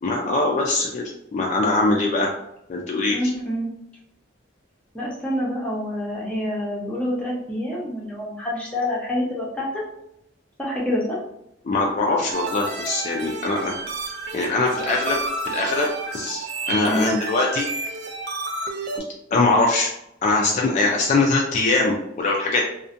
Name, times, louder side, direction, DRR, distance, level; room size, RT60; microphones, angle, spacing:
voice 1, 0.0-2.3 2.7-3.3 11.6-13.7 14.3-15.2 15.4-17.7 19.3-19.9 20.2-22.6, left 3 dB, 40° left, -1 dB, 0.3 m, -22 dB
voice 2, 3.1-3.7 4.9-9.8 10.6-11.2 16.8-17.2, left 1 dB, 5° left, -5 dB, 0.7 m, -27 dB
sound 1, 12.3-19.0, right 3 dB, 60° right, 0.4 m, -30 dB
2.5 x 2.1 x 2.5 m, 0.80 s
head